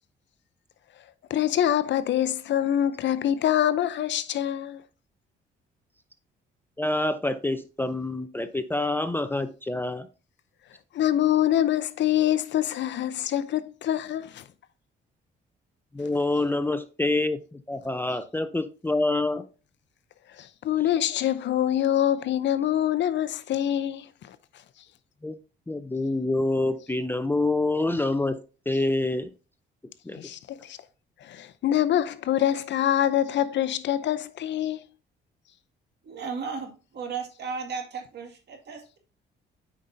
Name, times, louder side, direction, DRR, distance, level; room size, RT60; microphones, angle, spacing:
voice 1, 1.3-4.8 10.9-14.4 20.4-24.4 30.1-30.8 31.2-34.8, left 11 dB, 65° left, 0.6 m, -25 dB
voice 2, 6.8-10.1 15.9-19.5 25.2-25.4 25.7-29.3 30.1-30.2, left 2 dB, 10° left, 0.5 m, -27 dB
voice 3, 36.0-39.0, right 5 dB, 60° right, 2.0 m, -35 dB
8.3 x 5.1 x 2.6 m
cardioid pair, 90°, 20 cm